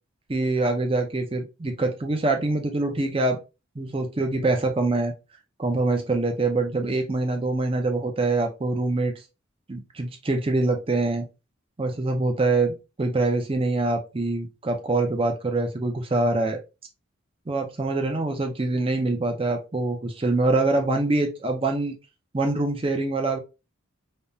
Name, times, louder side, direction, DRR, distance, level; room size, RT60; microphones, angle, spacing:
voice 1, 0.3-3.4 3.8-5.1 5.6-9.1 9.7-11.3 11.8-16.6 17.5-21.9 22.3-23.4, right 2 dB, 25° right, 4 dB, 0.5 m, -24 dB
3.4 x 2.1 x 2.5 m, 0.28 s
head